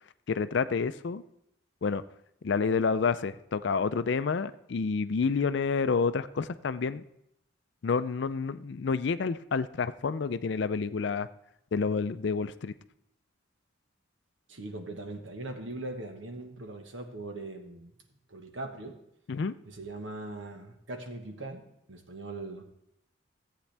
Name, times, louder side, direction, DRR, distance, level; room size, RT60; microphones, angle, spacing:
voice 1, 0.3-1.2 1.8-2.0 2.4-7.0 7.8-11.3 11.7-12.7 19.3-19.6, left 5 dB, 60° left, 13 dB, 0.4 m, -29 dB
voice 2, 14.5-17.9 18.3-19.0 19.7-22.6, right 2 dB, 70° right, 4 dB, 1.3 m, -40 dB
14.5 x 8.3 x 3.4 m, 0.79 s
head